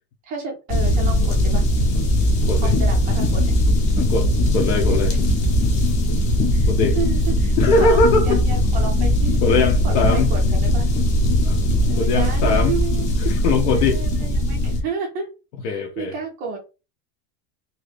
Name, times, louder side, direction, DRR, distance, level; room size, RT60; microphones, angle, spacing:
voice 1, 0.2-1.6 2.5-3.5 4.9-5.2 6.5-9.4 9.8-10.9 11.8-13.1 13.7-15.3 15.6-16.6, right 5 dB, 20° right, 0.3 m, -31 dB
sound 1, 0.7-14.8, left 1 dB, 35° left, 0.8 m, -19 dB
voice 2, 4.0-5.1 6.7-7.0 7.6-8.4 9.4-10.3 11.4-11.6 12.0-12.8 13.2-14.0 15.6-16.1, left 4 dB, 75° left, 0.9 m, -21 dB
2.9 x 2.7 x 3.3 m
supercardioid pair, 160°, 49 cm